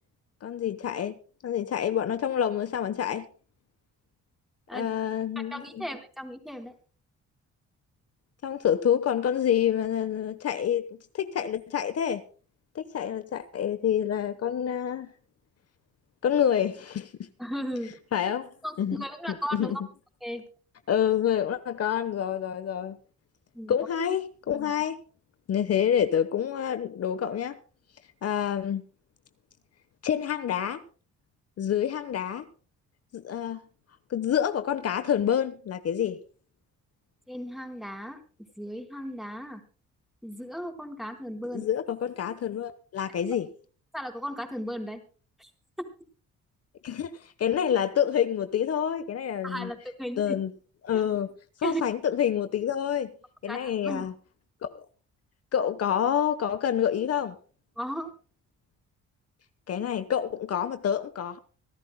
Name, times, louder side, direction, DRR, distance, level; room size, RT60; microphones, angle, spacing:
voice 1, 0.4-1.2 1.4-3.3 4.7-5.8 8.4-10.9 11.1-12.2 12.7-15.1 16.2-17.3 18.1-18.5 18.8-19.0 19.5-19.8 20.9-23.0 23.7-25.0 25.5-27.6 28.2-28.8 30.0-30.8 31.6-32.5 33.1-33.6 34.1-36.2 41.5-43.5 46.8-49.7 50.2-50.5 50.8-51.3 51.6-53.1 53.4-54.1 54.6-54.8 55.5-57.4 59.7-61.4, left 9 dB, 55° left, 1.1 m, -27 dB
voice 2, 5.4-6.7 17.4-18.0 18.6-19.7 20.2-20.4 23.5-23.8 37.3-38.2 38.6-39.6 40.2-41.6 43.9-45.0 45.4-45.5 45.8-45.9 49.4-50.4 50.9-51.0 51.6-51.8 53.5-54.1 57.8-58.1, equal, ahead, 4.0 m, -36 dB
25.5 x 13.0 x 2.2 m
cardioid pair, 90°, 30 cm